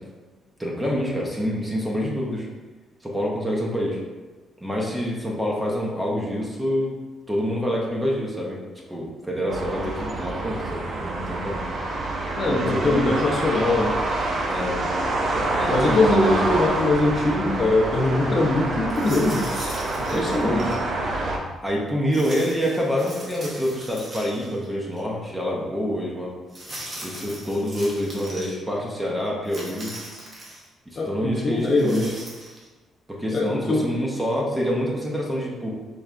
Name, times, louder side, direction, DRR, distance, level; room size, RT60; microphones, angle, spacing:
voice 1, 0.6-2.5 3.0-4.0 4.6-7.0 7.3-8.6 8.9-11.6 12.5-13.2 14.5-14.8 15.6-16.5 20.1-20.8 21.6-26.3 27.0-30.0 31.1-32.1 33.1-35.7, equal, 5° right, -3 dB, 0.7 m, -27 dB
sound 1, 9.5-21.4, right 2 dB, 50° right, 0.6 m, -27 dB
voice 2, 12.4-13.9 15.7-19.5 20.1-20.6 31.0-32.0 33.3-33.9, left 2 dB, 35° left, -2 dB, 0.5 m, -22 dB
sound 2, 18.9-20.8 22.1-24.7 25.0-25.1 26.5-28.5 29.4-30.7 31.6-32.6, right 1 dB, 30° right, 1.0 m, -39 dB
4.5 x 3.2 x 2.4 m, 1.3 s
cardioid pair, 145°, 0 cm